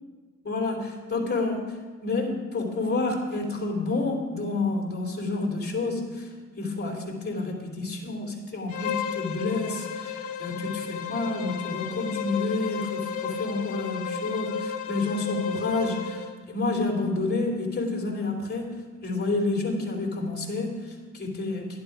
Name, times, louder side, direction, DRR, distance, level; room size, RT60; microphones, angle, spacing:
voice 1, 0.4-1.7 2.0-6.3 6.6-21.8, left 3 dB, 35° left, 1 dB, 3.1 m, -29 dB
Bowed string instrument, 8.7-16.4, left 7 dB, 80° left, 1.1 m, -33 dB
11.5 x 11.0 x 4.9 m, 1.5 s
cardioid pair, 90°, 30 cm